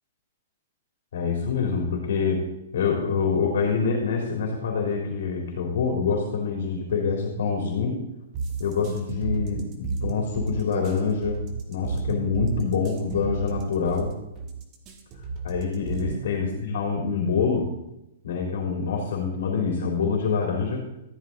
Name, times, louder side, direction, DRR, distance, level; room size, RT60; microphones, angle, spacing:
voice 1, 1.1-2.4 2.7-8.0 8.6-14.1 15.4-17.7 18.2-20.8, left 5 dB, 70° left, 1 dB, 3.5 m, -26 dB
sound 1, 8.3-16.4, right 4 dB, 25° right, 1.8 m, -32 dB
14.5 x 11.5 x 3.9 m, 0.86 s
hypercardioid pair, 170°, 0 cm